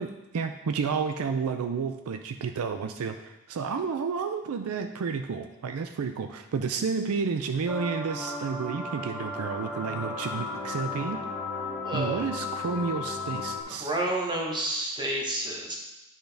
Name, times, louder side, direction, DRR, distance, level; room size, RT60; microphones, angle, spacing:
voice 1, 0.0-11.2 11.9-13.9, right 5 dB, 75° right, 7 dB, 0.4 m, -31 dB
sound 1, 7.7-13.6, left 3 dB, ahead, 0.8 m, -35 dB
voice 2, 11.8-12.2 13.7-15.8, right 1 dB, 20° right, -2 dB, 1.1 m, -30 dB
10.0 x 3.9 x 3.4 m, 0.96 s
head